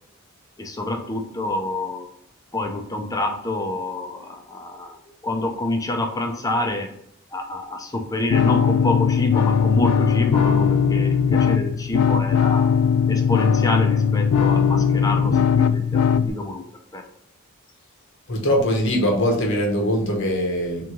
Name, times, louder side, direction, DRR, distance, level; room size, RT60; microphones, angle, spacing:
voice 1, 0.6-2.1 2.5-6.9 7.3-12.7 13.1-16.6 16.9-17.0, left 2 dB, 15° left, 3 dB, 0.5 m, -27 dB
sound 1, 8.3-16.3, left 7 dB, 90° left, 0.3 m, -19 dB
voice 2, 18.3-20.9, equal, 55° left, 1 dB, 1.0 m, -22 dB
3.6 x 3.1 x 3.7 m, 0.73 s
head